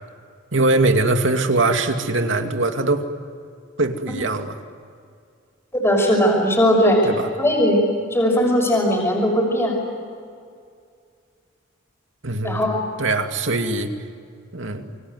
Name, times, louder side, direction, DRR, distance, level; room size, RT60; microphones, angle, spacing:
voice 1, 0.5-3.0 3.8-4.6 7.0-7.3 12.2-12.6 13.0-13.9 14.5-14.8, right 2 dB, 80° right, 5 dB, 2.5 m, -21 dB
voice 2, 5.8-7.0 7.4-7.8 8.1-9.8 12.4-12.8, equal, 15° left, 0 dB, 6.0 m, -18 dB
28.0 x 24.5 x 8.1 m, 2.3 s
head